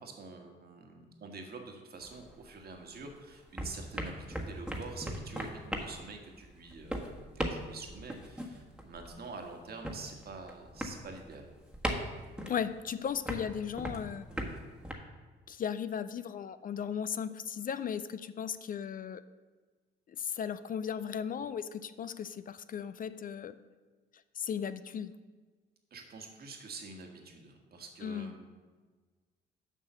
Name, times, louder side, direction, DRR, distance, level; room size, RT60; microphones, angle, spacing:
voice 1, 0.0-11.5 25.9-28.5, right 3 dB, 50° right, 3 dB, 1.6 m, -47 dB
sound 1, 2.0-3.1 3.4-14.9, equal, 5° right, 1.3 m, -39 dB
voice 2, 12.4-14.3 15.5-19.2 20.1-23.5 24.4-25.1 28.0-28.3, left 8 dB, 45° left, 13 dB, 0.4 m, -36 dB
7.3 x 5.5 x 6.9 m, 1.4 s
cardioid pair, 90°, 20 cm